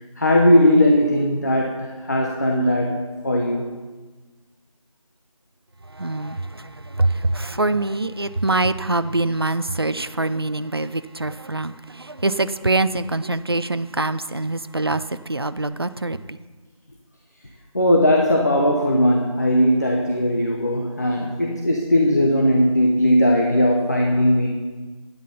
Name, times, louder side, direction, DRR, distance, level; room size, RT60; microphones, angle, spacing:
voice 1, 0.2-3.7 17.7-24.5, left 1 dB, 30° left, 0.9 m, -18 dB
voice 2, 5.9-16.2, right 2 dB, 45° right, 0.5 m, -24 dB
11.5 x 9.6 x 5.6 m
figure-of-eight pair, 170°, 18 cm